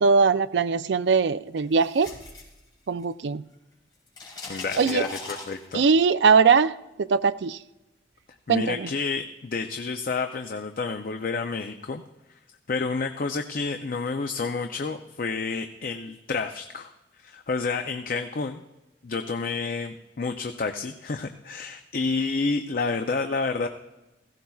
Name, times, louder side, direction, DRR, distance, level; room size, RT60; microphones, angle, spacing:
voice 1, 0.0-2.1 2.9-3.4 4.8-5.0 5.7-7.6 8.5-8.9, right 5 dB, 80° right, 13 dB, 0.4 m, -21 dB
sound 1, 1.6-3.3 3.5-6.0, left 3 dB, 25° left, 4.5 m, -40 dB
voice 2, 4.5-5.8 8.5-12.0 12.7-16.9 17.2-18.6 19.0-23.7, left 4 dB, 50° left, 6 dB, 0.5 m, -29 dB
17.0 x 16.0 x 2.3 m, 1.0 s
head